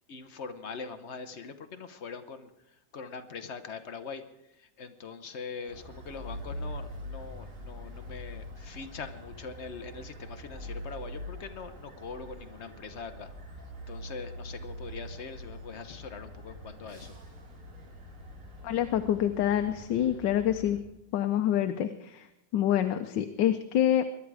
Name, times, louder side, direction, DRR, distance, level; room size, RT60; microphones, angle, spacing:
voice 1, 0.1-13.3 13.9-17.2, left 5 dB, 50° left, 9 dB, 0.9 m, -42 dB
sound 1, 5.7-20.8, equal, 45° right, 2.2 m, -44 dB
voice 2, 18.6-20.8 21.1-22.3 22.5-24.1, left 11 dB, 80° left, 7 dB, 1.4 m, -26 dB
21.5 x 11.0 x 4.8 m, 0.84 s
omnidirectional pair, 2.0 m